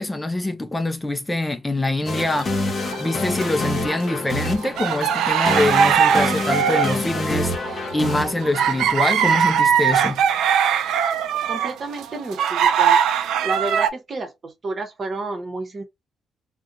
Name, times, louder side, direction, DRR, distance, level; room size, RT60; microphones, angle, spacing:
voice 1, 0.0-2.6 2.9-10.2, left 2 dB, 15° left, 0.4 m, -24 dB
sound 1, 2.0-10.0, left 2 dB, 40° left, 0.8 m, -28 dB
sound 2, 2.2-3.5 3.9-13.9, right 8 dB, 80° right, 0.3 m, -20 dB
voice 2, 11.5-13.0 13.4-15.8, right 3 dB, 40° right, 0.9 m, -30 dB
2.7 x 2.1 x 2.6 m
cardioid pair, 90°, 0 cm